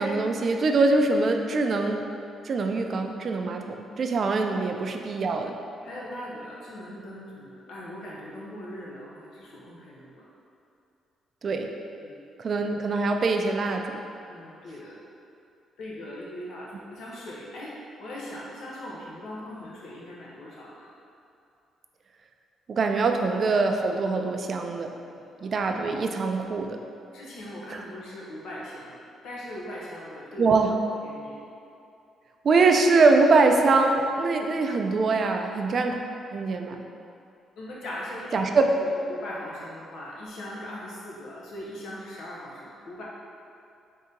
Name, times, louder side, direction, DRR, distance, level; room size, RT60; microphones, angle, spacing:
voice 1, 0.0-2.0 2.5-5.5 11.4-11.7 12.4-14.0 22.7-24.9 25.4-26.7 27.7-27.8 30.4-30.7 32.4-36.0 36.3-36.8 38.3-38.7, right 3 dB, 50° right, 4 dB, 0.3 m, -23 dB
voice 2, 5.8-10.2 12.0-12.2 14.3-15.0 15.8-20.9 25.0-25.2 27.1-29.0 29.2-30.5 30.9-31.4 37.6-43.0, left 1 dB, 70° left, -5 dB, 0.8 m, -40 dB
3.9 x 2.7 x 3.7 m, 2.6 s
cardioid pair, 90°, 0 cm